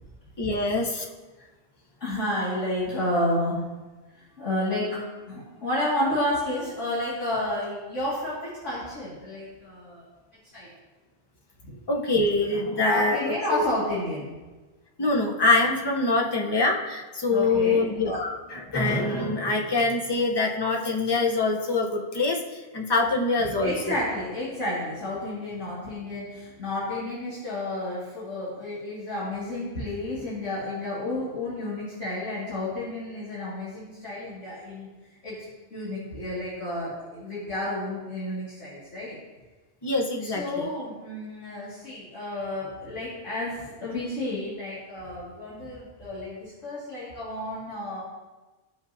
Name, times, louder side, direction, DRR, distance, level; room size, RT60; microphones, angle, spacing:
voice 1, 0.4-1.0 11.9-13.6 15.0-22.4 22.7-23.9 39.8-40.7, left 3 dB, 25° left, 0 dB, 0.8 m, -24 dB
voice 2, 2.0-3.7 4.2-10.0 10.5-10.7 11.6-11.7 12.8-14.3 17.3-17.8 23.4-34.9 35.2-35.4 35.7-39.2 40.2-48.0, left 1 dB, 75° left, -10 dB, 2.5 m, -31 dB
15.0 x 5.4 x 2.7 m, 1.2 s
omnidirectional pair, 1.3 m